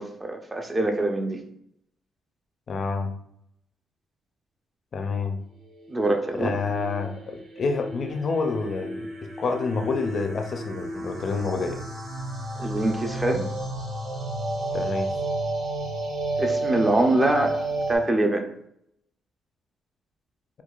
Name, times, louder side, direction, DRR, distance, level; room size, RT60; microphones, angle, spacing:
voice 1, 0.0-1.4 5.9-6.5 12.6-13.4 16.4-17.6 17.9-18.5, right 2 dB, 20° right, 4 dB, 0.5 m, -24 dB
voice 2, 2.7-3.1 4.9-5.4 6.3-9.1 9.4-11.8 14.7-15.1, left 4 dB, 50° left, 5 dB, 0.4 m, -28 dB
sound 1, 6.6-18.0, right 2 dB, 90° right, 1.2 m, -31 dB
4.5 x 2.3 x 2.3 m, 0.73 s
cardioid pair, 90°, 0 cm